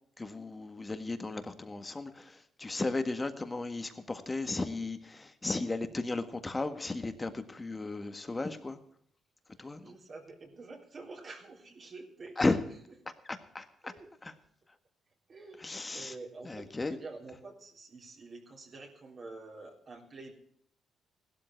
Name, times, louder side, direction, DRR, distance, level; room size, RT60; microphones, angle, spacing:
voice 1, 0.2-8.8 9.6-9.9 12.4-12.6 13.2-13.9 14.2-14.3 15.6-16.1 16.4-17.0, left 2 dB, 20° left, 8 dB, 1.7 m, -35 dB
voice 2, 9.5-12.5 13.8-14.1 15.3-15.7 15.9-20.3, right 3 dB, 45° right, 0 dB, 3.5 m, -48 dB
16.5 x 12.5 x 4.6 m, 0.65 s
cardioid pair, 90°, 0 cm